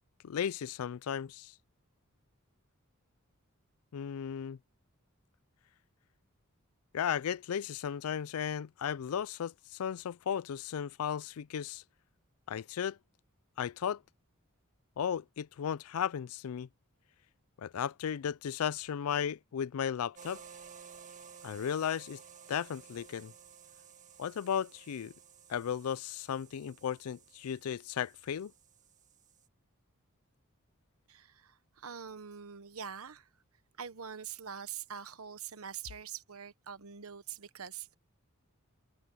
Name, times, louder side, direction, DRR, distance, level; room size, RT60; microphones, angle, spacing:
voice 1, 0.2-1.5 3.9-4.6 6.9-11.8 12.5-13.0 13.6-14.0 15.0-16.7 17.6-20.4 21.4-22.2 22.5-23.3 24.2-25.1 25.5-28.5, left 8 dB, 85° left, 0.4 m, -35 dB
sound 1, 20.2-29.5, right 7 dB, 35° right, 1.7 m, -55 dB
voice 2, 31.1-33.3 33.8-38.0, right 7 dB, 80° right, 1.1 m, -44 dB
head